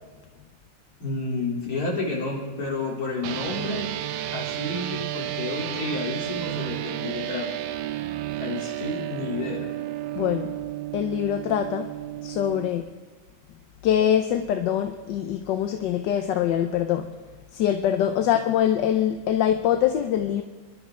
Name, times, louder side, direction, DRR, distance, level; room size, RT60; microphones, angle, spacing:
voice 1, 1.0-3.9 4.3-7.5 8.4-9.7, left 3 dB, 55° left, -4 dB, 3.8 m, -30 dB
sound 1, 3.2-12.7, right 14 dB, 90° right, 1.4 m, -32 dB
voice 2, 10.2-10.5 10.9-11.9 12.2-12.9 13.8-17.1 17.5-20.4, left 10 dB, 75° left, 6 dB, 1.3 m, -24 dB
27.5 x 11.5 x 3.7 m, 1.3 s
omnidirectional pair, 2.0 m